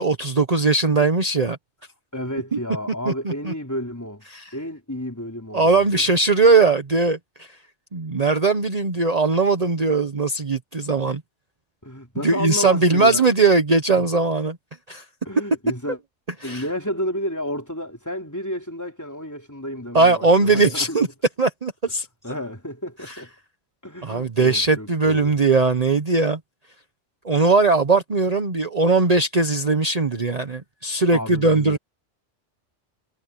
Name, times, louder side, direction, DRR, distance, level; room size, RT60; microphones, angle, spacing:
voice 1, 0.0-1.6 2.5-2.6 3.0-3.5 4.3-4.4 5.5-7.5 7.9-11.2 12.2-14.6 14.9-15.0 16.4-16.6 19.9-21.1 21.4-22.1 23.1-23.2 24.0-26.4 27.2-31.8, right 3 dB, 35° right, 1.2 m, -19 dB
voice 2, 2.1-4.2 4.5-6.1 11.8-13.3 14.0-14.1 15.3-16.0 16.4-21.0 22.2-23.3 23.8-25.4 31.1-31.8, equal, 15° left, 3.7 m, -31 dB
omnidirectional pair, 1.2 m